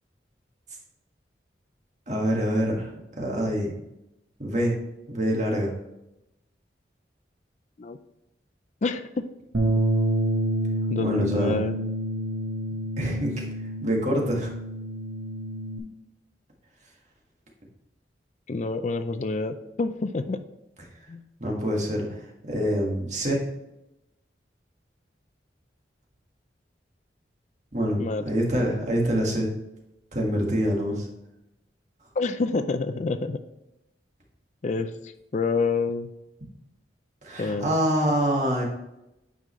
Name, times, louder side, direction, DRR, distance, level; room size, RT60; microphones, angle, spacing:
voice 1, 2.1-2.9 3.2-3.7 4.4-4.7 5.1-5.7 11.0-11.6 13.0-13.4 13.8-14.5 21.4-23.4 27.7-29.5 30.1-31.1 37.2-38.7, equal, 40° right, -1 dB, 1.7 m, -25 dB
voice 2, 8.8-9.2 10.9-11.8 18.5-20.4 21.1-21.2 28.0-28.2 32.2-33.4 34.6-36.1 37.4-37.7, left 3 dB, 40° left, 10 dB, 0.4 m, -28 dB
Bass guitar, 9.5-15.8, right 1 dB, 70° right, 1.2 m, -28 dB
9.4 x 5.3 x 3.1 m, 0.90 s
head